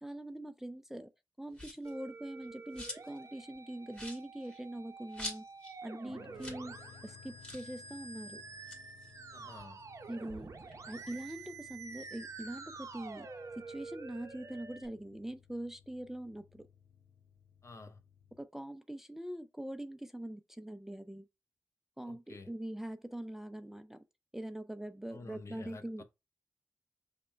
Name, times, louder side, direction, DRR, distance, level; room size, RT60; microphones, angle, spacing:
voice 1, 0.0-1.1 1.4-5.4 5.8-6.7 7.0-8.4 10.1-10.5 10.9-13.3 13.5-16.7 18.4-21.3 22.0-24.0 24.3-26.0, right 1 dB, 5° right, 0.4 m, -43 dB
sound 1, 1.5-2.0 2.4-3.2 3.5-3.6 3.9-5.8 6.0-6.1 6.3-6.7 6.9-7.0 7.4-7.7 8.5-10.2 10.6-12.1, left 1 dB, 20° left, 1.6 m, -47 dB
Musical instrument, 1.8-14.9, right 4 dB, 60° right, 0.6 m, -49 dB
sound 2, 6.1-18.4, left 7 dB, 85° left, 0.7 m, -60 dB
voice 2, 6.2-6.6 9.3-9.8 17.6-18.0 22.1-22.5 25.1-26.0, left 3 dB, 55° left, 0.8 m, -51 dB
5.3 x 2.2 x 4.3 m
wide cardioid pair, 80°, 6 cm